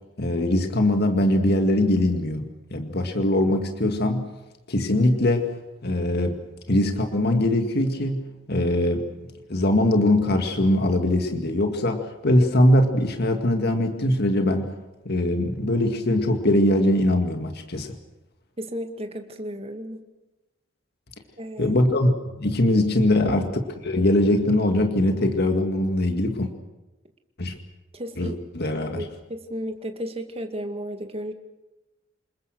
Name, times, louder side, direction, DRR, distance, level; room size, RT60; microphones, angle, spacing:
voice 1, 0.2-4.3 4.7-5.5 5.8-6.4 6.7-9.1 9.5-14.7 15.1-18.0 21.6-22.1 22.4-23.5 23.8-26.5 27.4-27.5 28.2-29.0, left 1 dB, 55° left, 5 dB, 2.1 m, -22 dB
voice 2, 18.6-20.0 21.4-21.8 27.9-28.4 28.9-31.3, equal, 30° right, 5 dB, 2.2 m, -33 dB
27.0 x 21.5 x 6.3 m, 1.0 s
head